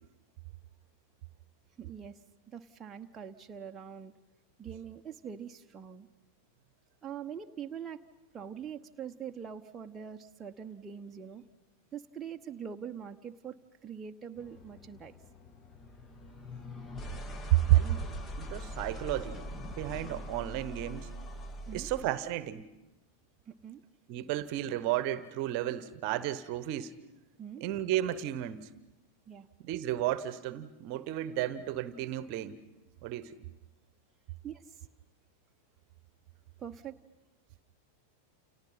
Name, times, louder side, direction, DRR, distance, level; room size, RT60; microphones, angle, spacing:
voice 1, 1.8-2.2 2.5-4.1 4.6-6.1 7.0-8.0 8.3-11.4 11.9-13.6 13.8-15.2 21.7-21.9 23.5-23.8 27.4-27.6 29.3-29.5 34.4-34.9 36.6-37.0, right 8 dB, 20° right, 1.0 m, -43 dB
sound 1, 14.4-22.2, equal, 20° left, 1.6 m, -43 dB
voice 2, 17.5-19.4 19.8-21.1 21.7-22.7 24.1-26.9 27.6-28.7 29.6-32.6 33.0-33.4, right 14 dB, 45° right, 1.1 m, -32 dB
30.0 x 29.5 x 5.7 m
figure-of-eight pair, 90°, 0 cm